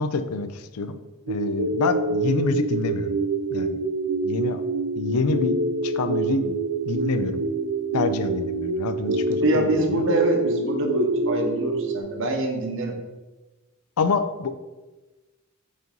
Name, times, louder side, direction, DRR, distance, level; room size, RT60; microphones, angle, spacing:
voice 1, 0.0-3.2 3.5-3.8 4.2-4.6 5.0-5.6 5.8-6.6 6.9-7.4 7.9-10.1 14.0-14.5, left 4 dB, 80° left, 10 dB, 0.5 m, -27 dB
sound 1, 1.3-12.0, right 3 dB, 80° right, 0.6 m, -26 dB
voice 2, 9.4-13.0, right 1 dB, 60° right, 3 dB, 1.0 m, -24 dB
5.2 x 3.9 x 5.2 m, 1.2 s
head